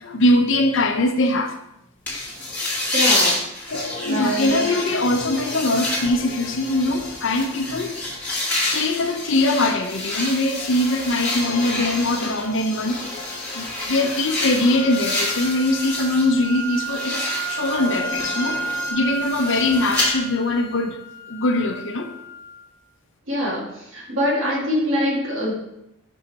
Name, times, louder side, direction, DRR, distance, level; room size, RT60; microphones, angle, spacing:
voice 1, 0.0-1.6 3.7-7.9 8.6-13.0 13.3-21.0 21.3-22.1, left 2 dB, 60° left, 0.7 m, -22 dB
sound 1, 2.1-16.3 16.6-20.1, left 2 dB, 10° left, 1.7 m, -28 dB
sound 2, 2.2-18.9, left 3 dB, 40° left, 1.1 m, -38 dB
voice 2, 2.9-3.4 4.0-4.5 23.3-25.5, equal, 65° right, 2.1 m, -24 dB
sound 3, 14.6-22.7, right 3 dB, 15° right, 0.8 m, -32 dB
5.6 x 5.2 x 4.1 m
head